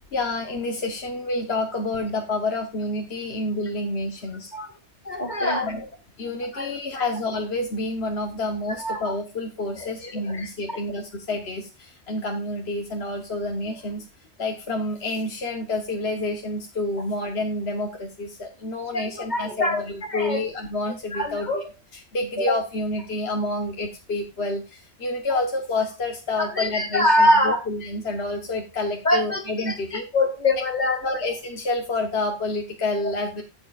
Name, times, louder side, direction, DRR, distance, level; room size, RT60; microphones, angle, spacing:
voice 1, 0.1-4.5 5.6-5.9 6.2-14.0 14.4-30.1 31.0-33.4, left 2 dB, 70° left, 2 dB, 1.5 m, -28 dB
voice 2, 5.1-5.7 6.5-6.8 8.8-9.0 9.8-10.5 18.9-19.8 20.1-20.4 21.1-21.6 26.4-27.6 29.0-29.4 29.7-29.8 30.1-31.0, left 1 dB, 40° left, 5 dB, 2.4 m, -23 dB
13.5 x 7.8 x 2.4 m, 0.32 s
omnidirectional pair, 1.1 m